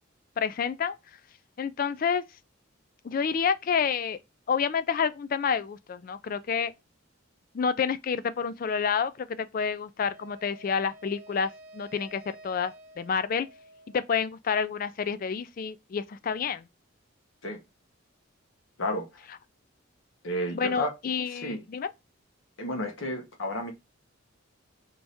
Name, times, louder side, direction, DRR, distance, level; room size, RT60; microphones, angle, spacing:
voice 1, 0.4-0.9 1.6-2.2 3.0-4.2 4.5-6.7 7.5-13.5 13.9-16.7 20.5-21.9, left 6 dB, 45° left, 0.3 m, -29 dB
Wind instrument woodwind instrument, 10.1-14.2, right 1 dB, 40° right, 0.8 m, -51 dB
voice 2, 20.2-20.9 21.3-21.6 22.6-23.7, equal, 75° left, 1.1 m, -31 dB
4.6 x 2.7 x 3.4 m
head